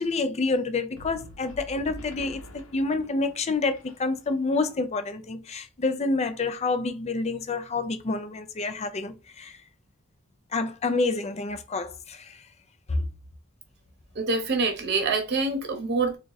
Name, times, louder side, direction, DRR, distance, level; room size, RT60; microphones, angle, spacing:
voice 1, 0.0-9.5 10.5-12.4 12.9-13.0, left 3 dB, 30° left, 0.5 m, -28 dB
sound 1, 1.0-4.5, left 1 dB, 80° left, 0.9 m, -45 dB
voice 2, 14.1-16.2, right 3 dB, 50° right, 0.9 m, -26 dB
3.7 x 2.4 x 3.9 m
head